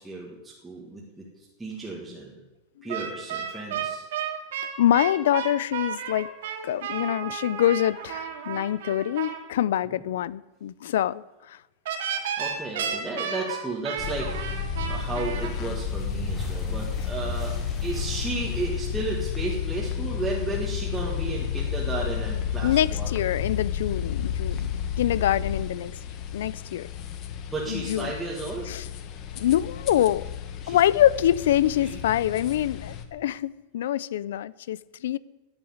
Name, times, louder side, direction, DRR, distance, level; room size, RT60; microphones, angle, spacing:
voice 1, 0.0-2.4 2.8-4.0 12.4-14.6 14.9-23.1 24.5-24.7 27.5-28.7 30.6-30.8 31.8-32.0, right 2 dB, 5° right, 1.7 m, -34 dB
sound 1, 2.9-9.4 11.9-15.5, right 8 dB, 80° right, 2.6 m, -32 dB
voice 2, 4.8-6.3 6.6-11.6 22.6-24.7 25.0-26.0 26.3-26.9 27.7-28.1 28.7-28.8 29.3-30.3 30.7-35.2, left 11 dB, 80° left, 0.5 m, -25 dB
sound 2, 14.0-33.0, left 8 dB, 35° left, 1.2 m, -32 dB
sound 3, 14.6-19.7, equal, 10° left, 3.6 m, -37 dB
11.5 x 8.8 x 9.6 m
supercardioid pair, 165°, 0 cm